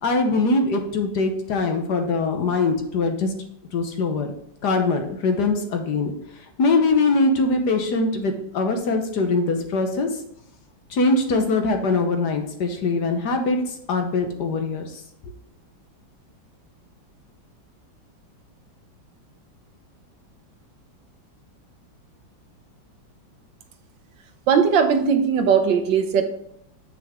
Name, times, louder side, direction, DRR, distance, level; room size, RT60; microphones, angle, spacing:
voice 1, 0.0-3.3 3.7-4.3 4.6-6.1 6.6-10.1 10.9-15.0, left 3 dB, 60° left, 5 dB, 1.4 m, -22 dB
voice 2, 24.5-26.2, right 6 dB, 70° right, 7 dB, 1.4 m, -19 dB
7.7 x 6.2 x 3.5 m, 0.73 s
omnidirectional pair, 2.1 m